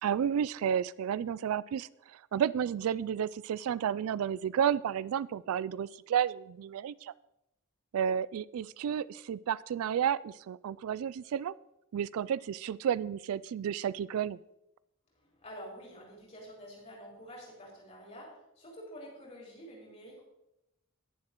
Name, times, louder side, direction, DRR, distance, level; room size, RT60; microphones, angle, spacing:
voice 1, 0.0-1.9 2.3-7.1 7.9-11.5 11.9-14.4, right 8 dB, 80° right, 20 dB, 0.3 m, -31 dB
voice 2, 15.1-20.2, equal, 30° left, -3 dB, 4.1 m, -48 dB
18.5 x 7.3 x 3.0 m, 0.87 s
head